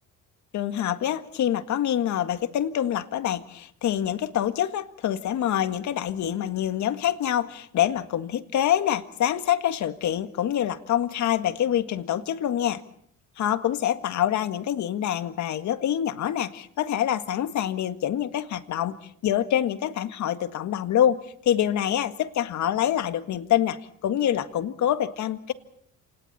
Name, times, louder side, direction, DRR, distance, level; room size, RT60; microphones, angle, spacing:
voice 1, 0.5-12.8 13.4-19.0 19.2-25.5, left 11 dB, 55° left, 12 dB, 1.8 m, -26 dB
28.0 x 27.5 x 4.3 m, 0.66 s
cardioid pair, 125°, 34 cm